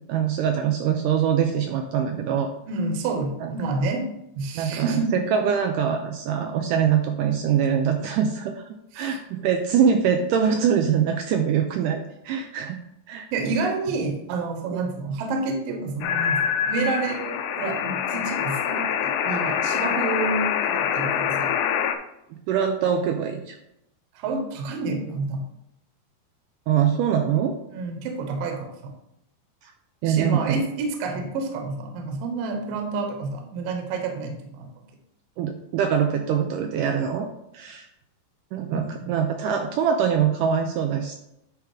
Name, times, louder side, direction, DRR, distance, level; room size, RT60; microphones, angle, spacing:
voice 1, 0.1-2.5 3.4-3.5 4.6-8.6 8.9-12.8 13.1-13.3 14.7-14.8 22.3-23.6 26.7-27.6 29.6-29.7 30.0-30.6 35.4-37.3 37.5-37.9 38.5-41.2, right 8 dB, 90° right, 5 dB, 1.9 m, -23 dB
voice 2, 2.7-4.1 4.4-5.1 8.9-9.2 13.3-21.5 24.2-25.4 27.7-28.9 30.1-34.7 38.7-39.1, right 3 dB, 70° right, 4 dB, 2.6 m, -29 dB
sound 1, 16.0-22.0, left 8 dB, 85° left, 1.7 m, -25 dB
10.5 x 3.6 x 4.8 m, 0.81 s
omnidirectional pair, 4.4 m